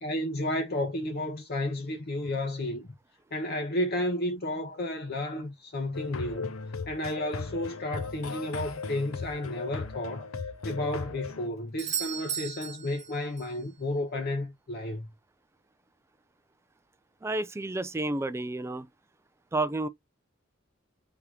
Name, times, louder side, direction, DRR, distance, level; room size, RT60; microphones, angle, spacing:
voice 1, 0.0-2.9 3.3-6.5 6.9-10.3 10.6-15.1, left 1 dB, 50° left, 0.8 m, -32 dB
sound 1, 5.9-11.5, left 4 dB, 85° left, 0.7 m, -37 dB
Doorbell, 11.8-13.6 17.7-17.8, right 9 dB, 35° right, 0.8 m, -36 dB
voice 2, 17.2-18.9 19.5-19.9, right 2 dB, 15° right, 0.3 m, -30 dB
3.5 x 2.8 x 4.7 m
head